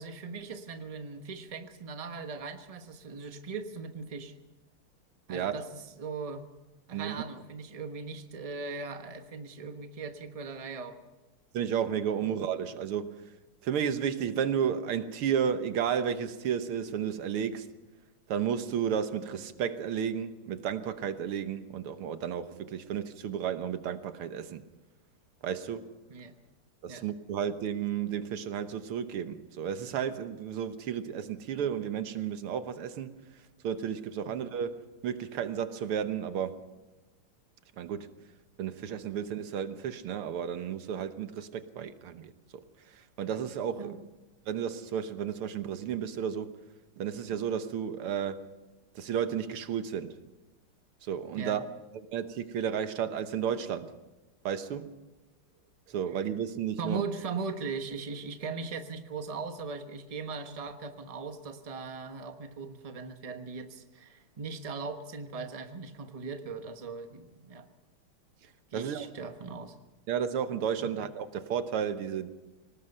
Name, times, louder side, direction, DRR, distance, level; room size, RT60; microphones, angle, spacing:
voice 1, 0.0-4.3 5.3-6.4 6.9-11.0 12.2-12.3 26.1-26.3 26.9-27.0 34.2-34.4 43.8-44.0 51.3-51.6 56.8-67.7 68.7-69.7 70.8-70.9, right 4 dB, 20° right, 1.1 m, -39 dB
voice 2, 11.5-13.2 13.6-17.7 18.3-24.6 25.4-25.9 26.8-33.1 33.6-36.6 37.8-38.1 38.6-44.0 44.5-46.5 47.0-48.5 49.0-50.2 51.0-51.7 51.9-53.9 54.5-54.9 55.9-57.0 68.7-69.1 70.1-72.3, right 8 dB, 85° right, 2.0 m, -32 dB
25.0 x 19.0 x 5.6 m
omnidirectional pair, 2.3 m